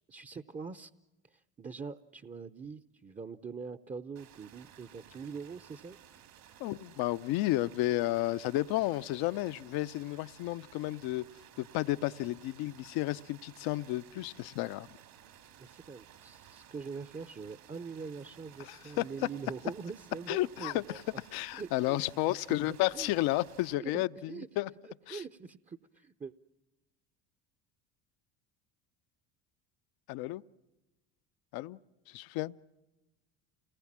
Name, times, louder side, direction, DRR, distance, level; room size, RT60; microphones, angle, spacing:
voice 1, 0.1-0.9 1.2-6.0 15.6-21.2 21.5-22.0 22.3-22.4 22.6-23.1 23.8-24.5 24.8-26.3, right 5 dB, 20° right, 0.7 m, -43 dB
sound 1, 4.2-23.7, right 10 dB, 60° right, 2.0 m, -57 dB
voice 2, 6.6-11.2 11.6-15.0 18.6-19.0 20.3-20.8 21.3-24.7 25.1-25.2 30.1-30.4 31.5-31.8 32.1-32.5, left 17 dB, 65° left, 0.7 m, -32 dB
28.5 x 19.5 x 7.4 m
hypercardioid pair, 75°, 39 cm